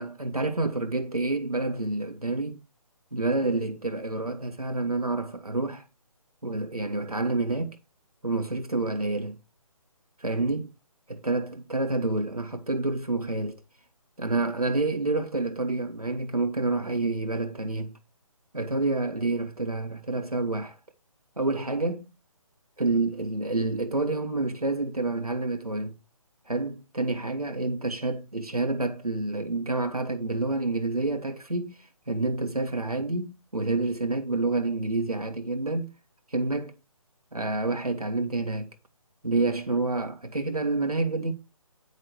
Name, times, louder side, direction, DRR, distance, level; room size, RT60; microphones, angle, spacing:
voice 1, 0.0-2.6 3.1-5.8 6.4-7.8 8.2-9.4 10.2-10.7 11.1-13.6 14.2-17.9 18.5-20.8 21.4-22.0 22.8-26.0 26.5-35.9 36.3-36.8 37.3-38.7 39.2-41.3, right 2 dB, 85° right, 2.0 m, -28 dB
10.0 x 6.3 x 4.5 m
figure-of-eight pair, 145°, 19 cm